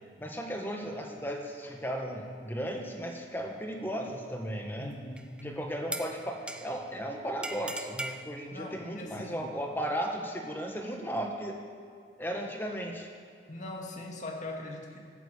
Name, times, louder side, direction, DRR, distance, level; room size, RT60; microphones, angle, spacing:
voice 1, 0.2-4.9 5.4-11.6 12.2-13.1, equal, 10° left, 1 dB, 1.5 m, -35 dB
voice 2, 4.8-5.6 8.5-9.5 13.5-15.0, left 2 dB, 40° left, 0 dB, 2.2 m, -41 dB
sound 1, 5.2-5.4 5.9-6.9 7.4-8.2, right 2 dB, 5° right, 0.6 m, -38 dB
13.5 x 12.0 x 8.4 m, 2.3 s
head